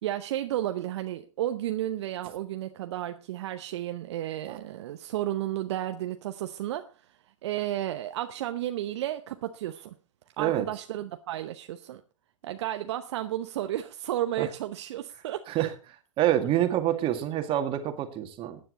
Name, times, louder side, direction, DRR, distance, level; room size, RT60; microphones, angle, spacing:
voice 1, 0.0-10.0 10.4-12.0 12.4-15.4, right 13 dB, 55° right, 0.9 m, -32 dB
voice 2, 16.2-18.6, right 12 dB, 30° right, 2.1 m, -26 dB
15.5 x 10.0 x 4.1 m
figure-of-eight pair, 105°, 17 cm